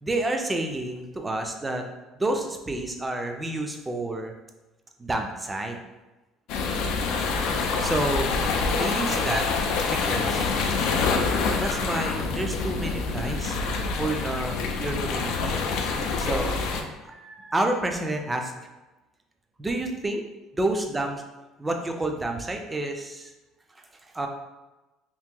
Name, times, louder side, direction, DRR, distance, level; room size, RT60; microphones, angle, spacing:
voice 1, 0.0-1.8 2.2-4.3 5.0-5.8 7.8-9.5 9.9-10.9 11.4-13.6 14.0-15.6 16.1-18.5 19.6-20.2 20.5-21.2 21.6-23.3 24.1-24.3, right 2 dB, 10° right, 3 dB, 0.4 m, -29 dB
sound 1, 6.5-16.8, left 4 dB, 65° left, 0.4 m, -26 dB
2.8 x 2.5 x 3.6 m, 1.1 s
cardioid pair, 150°, 0 cm